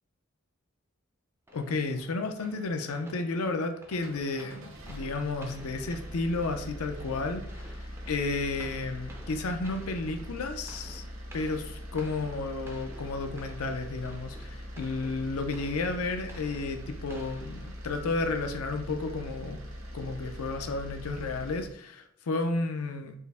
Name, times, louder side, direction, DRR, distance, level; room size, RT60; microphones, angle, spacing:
voice 1, 1.5-11.0 11.3-19.6 19.9-23.1, left 3 dB, 85° left, 6 dB, 0.5 m, -32 dB
sound 1, 1.5-18.2, equal, 10° right, 0.4 m, -53 dB
sound 2, 3.9-21.7, equal, 75° right, 0.9 m, -42 dB
4.4 x 2.1 x 3.4 m, 0.77 s
head